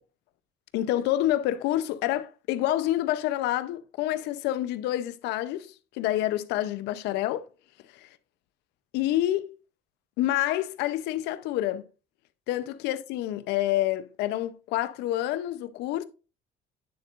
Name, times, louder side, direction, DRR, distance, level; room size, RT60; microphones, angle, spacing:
voice 1, 0.7-7.5 7.9-8.1 8.9-9.5 10.2-11.8 12.5-16.0, left 14 dB, 90° left, 0.6 m, -28 dB
9.5 x 7.4 x 2.4 m
cardioid pair, 110°, 17 cm